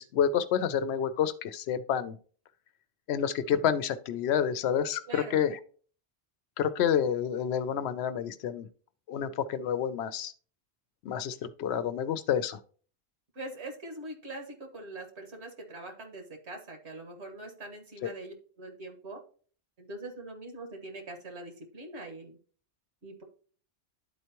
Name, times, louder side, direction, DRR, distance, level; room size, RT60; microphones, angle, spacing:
voice 1, 0.0-2.2 3.1-5.6 6.6-8.7 9.1-10.3 11.0-12.6 18.0-18.1, left 8 dB, 75° left, 14 dB, 0.8 m, -29 dB
voice 2, 5.1-5.4 13.4-19.2 19.8-22.4 23.0-23.2, right 2 dB, 80° right, 3 dB, 1.8 m, -43 dB
11.5 x 4.5 x 2.9 m, 0.43 s
omnidirectional pair, 1.1 m